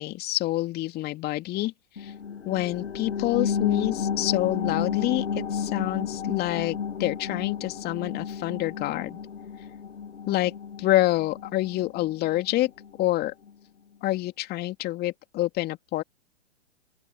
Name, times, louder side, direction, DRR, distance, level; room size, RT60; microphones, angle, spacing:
voice 1, 0.0-1.7 2.0-2.1 2.5-9.2 10.3-10.5 10.8-12.7 13.0-13.3 14.0-16.0, left 16 dB, 30° left, 2.6 m, -27 dB
sound 1, 2.0-13.1 13.5-13.6, left 7 dB, 80° left, 1.7 m, -32 dB
open air
figure-of-eight pair, 115°, 34 cm